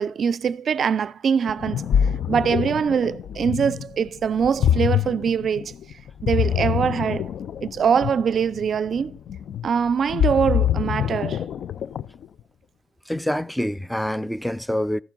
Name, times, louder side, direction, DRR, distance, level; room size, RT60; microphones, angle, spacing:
voice 1, 0.0-1.8 2.3-5.7 6.2-7.3 7.6-9.1 9.6-11.4, right 7 dB, 55° right, 0.4 m, -23 dB
Ocean, 1.5-12.3, left 10 dB, 65° left, 0.4 m, -25 dB
voice 2, 13.1-15.0, equal, 5° left, 0.4 m, -26 dB
14.5 x 7.1 x 3.8 m
cardioid pair, 90°, 0 cm